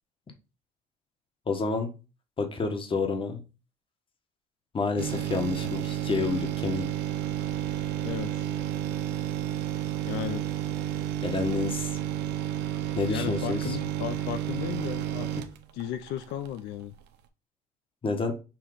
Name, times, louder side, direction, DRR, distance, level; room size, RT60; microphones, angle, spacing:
voice 1, 1.5-1.9 2.4-3.4 4.7-6.9 11.2-11.9 12.9-13.8 18.0-18.3, left 4 dB, 30° left, 4 dB, 1.5 m, -29 dB
sound 1, 5.0-16.6 16.9-17.0, right 11 dB, 85° right, 0.8 m, -31 dB
voice 2, 8.0-8.5 10.0-10.4 13.1-15.5 15.7-16.9, left 11 dB, 90° left, 9 dB, 0.6 m, -35 dB
6.2 x 3.1 x 5.0 m, 0.31 s
cardioid pair, 110°, 17 cm